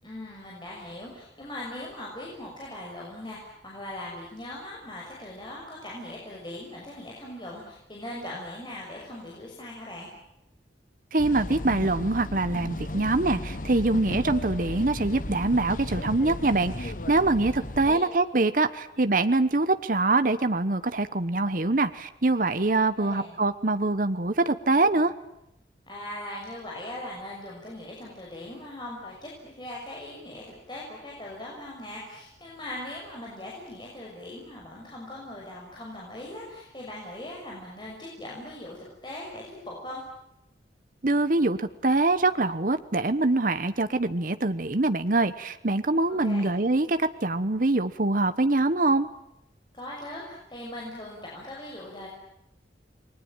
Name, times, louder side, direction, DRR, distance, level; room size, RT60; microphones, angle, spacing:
voice 1, 0.0-10.1 17.6-18.0 23.0-23.4 25.9-40.0 46.1-46.5 49.7-52.1, left 1 dB, 25° left, -3 dB, 6.3 m, -40 dB
voice 2, 11.1-25.1 41.0-49.1, right 2 dB, 50° right, 11 dB, 1.1 m, -24 dB
sound 1, 11.2-18.0, left 1 dB, 50° left, 1.3 m, -35 dB
29.5 x 21.5 x 9.0 m, 0.84 s
head